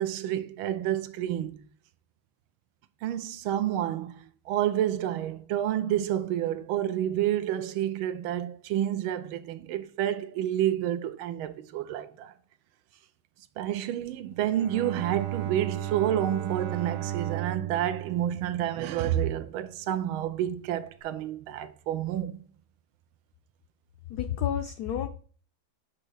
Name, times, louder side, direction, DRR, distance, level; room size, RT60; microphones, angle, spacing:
voice 1, 0.0-1.6 3.0-12.3 13.6-22.4, right 11 dB, 90° right, 1.4 m, -29 dB
Bowed string instrument, 14.3-19.5, right 13 dB, 70° right, 0.7 m, -35 dB
voice 2, 24.1-25.1, left 10 dB, 80° left, 0.8 m, -30 dB
7.8 x 3.0 x 6.2 m
omnidirectional pair, 2.2 m